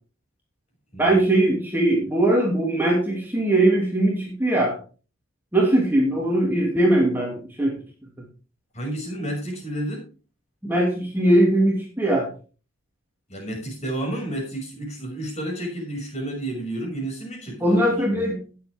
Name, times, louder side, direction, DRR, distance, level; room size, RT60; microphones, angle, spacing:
voice 1, 1.0-4.8 5.5-7.7 10.6-12.3 17.6-18.4, right 1 dB, 10° right, -2 dB, 2.6 m, -20 dB
voice 2, 8.7-10.1 13.3-17.8 18.1-18.2, right 1 dB, 30° left, 0 dB, 6.3 m, -31 dB
17.5 x 7.5 x 3.6 m, 0.36 s
head